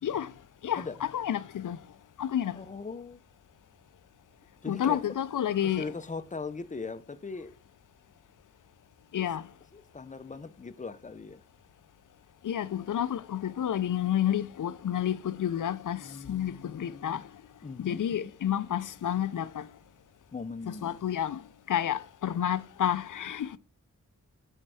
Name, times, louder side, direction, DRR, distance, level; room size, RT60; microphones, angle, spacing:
voice 1, 0.6-1.8 2.2-2.6 4.7-5.9 9.1-9.4 12.4-17.2 17.8-19.7 20.7-21.4 21.7-23.5, left 10 dB, 85° left, 0.5 m, -30 dB
voice 2, 2.6-3.2 4.6-5.0 5.6-7.5 9.2-9.3 9.7-11.4 16.0-17.2 17.6-18.3 20.3-21.0, left 4 dB, 25° left, 0.6 m, -40 dB
9.8 x 4.5 x 6.2 m
wide cardioid pair, 115°, 30 cm